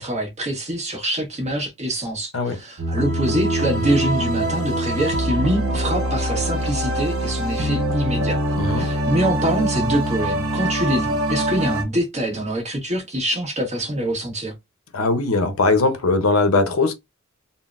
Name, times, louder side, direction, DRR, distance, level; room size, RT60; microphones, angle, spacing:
voice 1, 0.0-8.4 8.8-14.5, right 1 dB, 35° right, 1.2 m, -24 dB
sound 1, 2.8-11.8, right 1 dB, 75° right, 1.0 m, -23 dB
voice 2, 8.6-8.9 14.9-16.9, left 3 dB, 75° left, 0.7 m, -20 dB
3.8 x 2.1 x 2.4 m
head